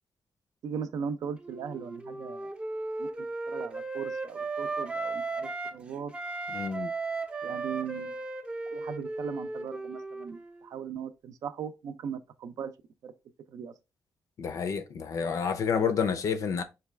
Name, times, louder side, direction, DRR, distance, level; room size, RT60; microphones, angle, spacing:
voice 1, 0.6-2.5 3.0-6.1 7.4-8.2 8.7-12.7 13.0-13.1 13.5-13.7, right 7 dB, 80° right, 0.4 m, -38 dB
Wind instrument woodwind instrument, 1.4-5.8 6.1-10.6, right 3 dB, 20° right, 0.5 m, -36 dB
voice 2, 6.5-6.9 14.4-16.6, left 6 dB, 65° left, 0.5 m, -29 dB
3.9 x 2.3 x 3.2 m
cardioid pair, 120°, 6 cm